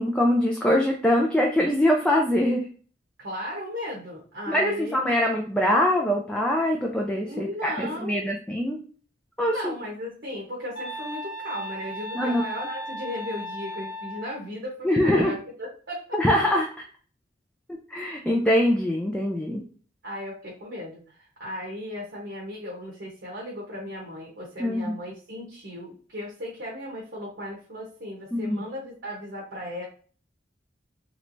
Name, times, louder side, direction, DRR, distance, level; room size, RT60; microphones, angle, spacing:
voice 1, 0.0-2.6 4.5-8.8 9.4-9.7 12.1-12.4 14.8-15.4 16.1-16.7 17.7-19.6 24.6-25.0 28.3-28.6, left 1 dB, 5° left, -1 dB, 0.4 m, -23 dB
voice 2, 3.2-5.1 7.2-8.2 9.5-16.2 20.0-29.8, equal, 65° right, -3 dB, 1.0 m, -36 dB
sound 1, 10.8-14.4, left 1 dB, 85° left, 1.0 m, -36 dB
3.2 x 3.1 x 2.5 m, 0.42 s
head